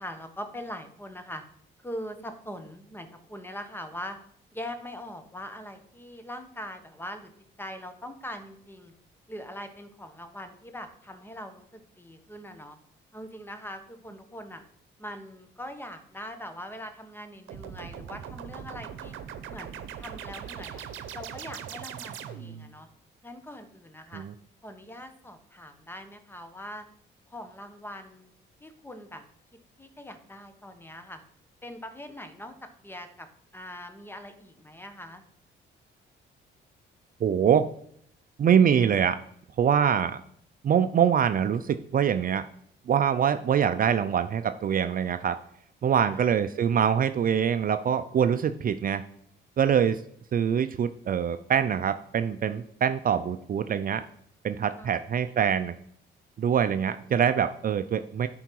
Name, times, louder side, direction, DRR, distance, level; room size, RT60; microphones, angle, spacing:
voice 1, 0.0-1.4 1.8-4.2 4.5-7.3 7.6-8.9 9.3-12.8 13.1-14.6 15.0-19.1 19.5-20.8 21.1-22.9 23.2-24.2 24.6-26.8 27.3-28.3 28.6-29.2 29.8-31.2 31.6-33.3 33.5-35.2 46.0-46.3 54.7-55.0, equal, 10° left, 8 dB, 1.2 m, -42 dB
sound 1, 17.5-22.7, right 8 dB, 85° right, 0.8 m, -40 dB
voice 2, 37.2-37.7 38.4-39.2 39.6-40.2 40.6-42.4 42.9-45.4 45.8-49.0 49.6-50.0 50.3-54.0 54.4-55.7 56.4-58.3, right 8 dB, 45° right, 10 dB, 0.5 m, -24 dB
10.5 x 4.7 x 4.6 m, 0.67 s
cardioid pair, 90°, 20 cm